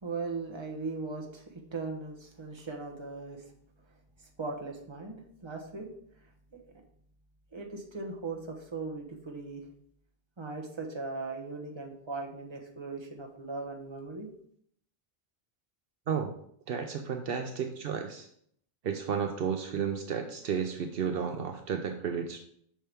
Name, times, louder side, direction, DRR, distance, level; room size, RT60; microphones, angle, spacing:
voice 1, 0.0-3.4 4.4-5.9 7.5-9.6 10.4-14.3, right 3 dB, 30° right, 1 dB, 1.1 m, -38 dB
voice 2, 16.7-18.3 18.8-22.4, right 7 dB, 70° right, 6 dB, 0.8 m, -32 dB
7.4 x 5.6 x 3.5 m, 0.66 s
omnidirectional pair, 1.0 m